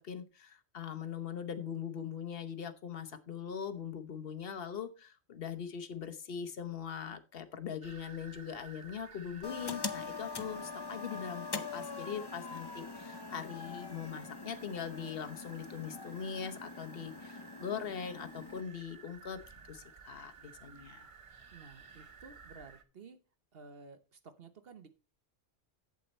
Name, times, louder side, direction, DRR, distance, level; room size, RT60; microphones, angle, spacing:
voice 1, 0.0-21.1, left 7 dB, 50° left, 9 dB, 1.0 m, -41 dB
sound 1, 7.8-22.8, right 5 dB, 35° right, 0.7 m, -55 dB
sound 2, 9.4-18.6, left 4 dB, 30° left, 0.4 m, -43 dB
voice 2, 21.5-23.2 23.5-24.9, right 4 dB, 50° right, 10 dB, 1.1 m, -53 dB
8.3 x 8.0 x 4.2 m, 0.32 s
omnidirectional pair, 1.3 m